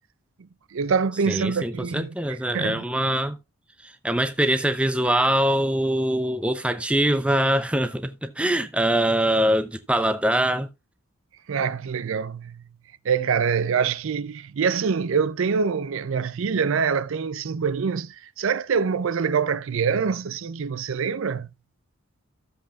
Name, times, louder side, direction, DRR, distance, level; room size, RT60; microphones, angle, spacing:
voice 1, 0.7-2.1 2.5-2.8 11.5-12.6 13.0-21.5, right 6 dB, 65° right, 0.4 m, -25 dB
voice 2, 1.3-3.4 3.8-10.7, right 1 dB, 5° right, 0.6 m, -23 dB
14.0 x 7.5 x 2.4 m
head